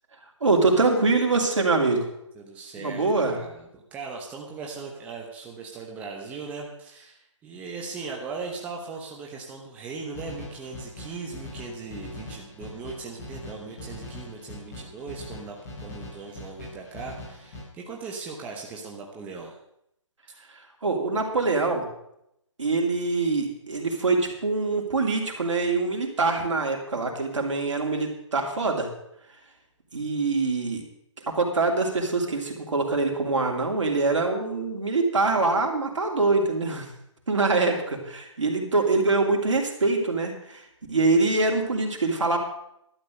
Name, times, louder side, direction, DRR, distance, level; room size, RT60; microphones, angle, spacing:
voice 1, 0.4-2.1 2.8-3.4 20.8-21.8 22.6-28.9 29.9-30.8 31.3-36.9 37.3-40.6 40.9-42.4, right 3 dB, 70° right, 2 dB, 3.0 m, -24 dB
voice 2, 2.4-15.5 15.8-19.5, right 4 dB, 10° right, -1 dB, 1.0 m, -38 dB
sound 1, 10.1-17.6, left 2 dB, 30° left, 5.4 m, -41 dB
12.0 x 9.0 x 6.4 m, 0.78 s
hypercardioid pair, 155°, 16 cm